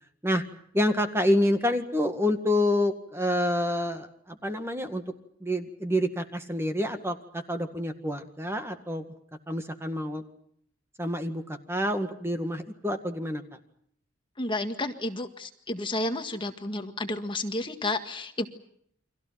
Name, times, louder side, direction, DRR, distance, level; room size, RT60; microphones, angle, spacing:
voice 1, 0.7-5.0 5.4-9.0 9.5-10.2 11.0-13.4, left 1 dB, 10° right, 7 dB, 1.9 m, -27 dB
voice 2, 14.4-18.5, left 2 dB, 25° left, 6 dB, 1.8 m, -31 dB
30.0 x 25.0 x 5.8 m, 0.69 s
head